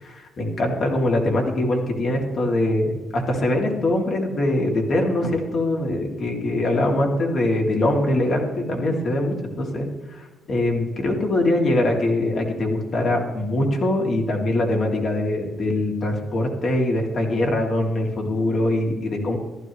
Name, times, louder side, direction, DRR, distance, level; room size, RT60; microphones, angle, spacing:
voice 1, 0.0-19.4, left 1 dB, 55° left, 1 dB, 2.8 m, -23 dB
14.5 x 12.5 x 3.2 m, 1.2 s
cardioid pair, 90°, 0 cm